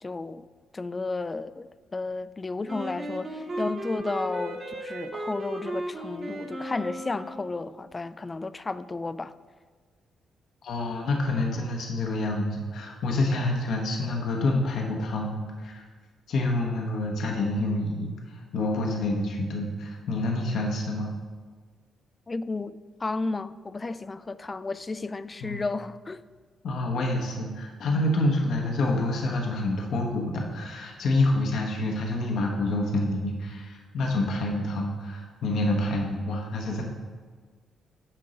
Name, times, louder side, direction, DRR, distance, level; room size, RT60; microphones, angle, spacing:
voice 1, 0.0-0.5 0.7-9.3 22.3-26.2, left 3 dB, 30° left, 0.3 m, -33 dB
Wind instrument woodwind instrument, 2.7-7.7, right 1 dB, 45° right, 1.2 m, -35 dB
voice 2, 10.6-15.8 16.3-21.1 25.4-25.6 26.6-36.8, left 2 dB, 65° left, 0.8 m, -27 dB
8.9 x 3.7 x 5.0 m
hypercardioid pair, 45°, 0 cm